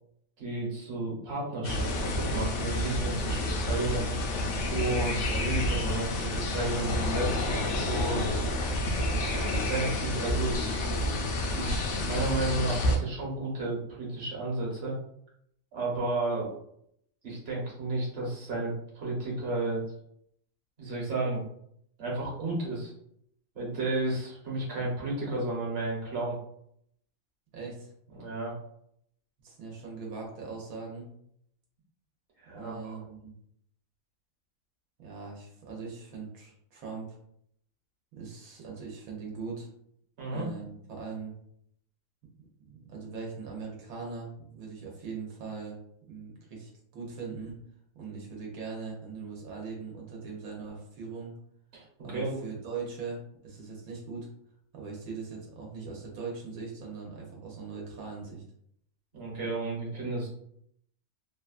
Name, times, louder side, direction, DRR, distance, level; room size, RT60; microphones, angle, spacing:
voice 1, 0.4-4.1 4.7-8.5 9.5-10.8 11.5-14.9 15.7-16.5 17.2-19.8 20.8-21.4 22.0-22.9 23.5-26.4 28.1-28.5 32.4-33.0 40.2-40.5 51.7-52.4 59.1-60.3, right 2 dB, 50° right, -4 dB, 1.2 m, -32 dB
sound 1, 1.6-13.0, left 1 dB, 65° left, 0.8 m, -29 dB
voice 2, 27.5-27.9 29.4-31.1 32.5-33.3 35.0-37.1 38.1-39.7 40.3-41.3 42.6-45.8 46.1-47.6 47.9-51.3 52.0-54.3 54.7-58.4, right 4 dB, 90° right, -1 dB, 1.2 m, -40 dB
3.0 x 2.2 x 2.4 m, 0.71 s
omnidirectional pair, 1.5 m